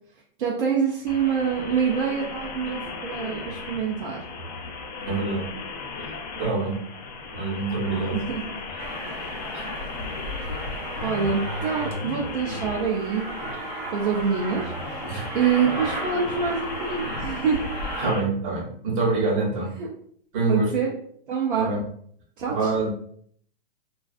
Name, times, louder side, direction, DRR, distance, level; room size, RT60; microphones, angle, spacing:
voice 1, 0.4-4.2 8.1-8.4 11.0-13.2 13.9-15.0 15.3-17.7 19.8-19.9 20.5-20.9 21.3-21.7 22.4-22.7, right 6 dB, 55° right, -2 dB, 0.5 m, -26 dB
sound 1, 1.1-18.2, left 3 dB, 45° left, 0.5 m, -36 dB
voice 2, 5.0-5.5 6.0-6.8 7.3-8.3 8.7-9.7 10.4-10.6 15.1-15.3 18.0-19.7 20.3-20.8 21.5-21.8 22.5-22.9, right 3 dB, 35° right, -4 dB, 0.9 m, -27 dB
Aircraft, 8.8-18.1, right 1 dB, 85° right, 1.0 m, -34 dB
2.4 x 2.3 x 2.3 m, 0.63 s
hypercardioid pair, 165°, 30 cm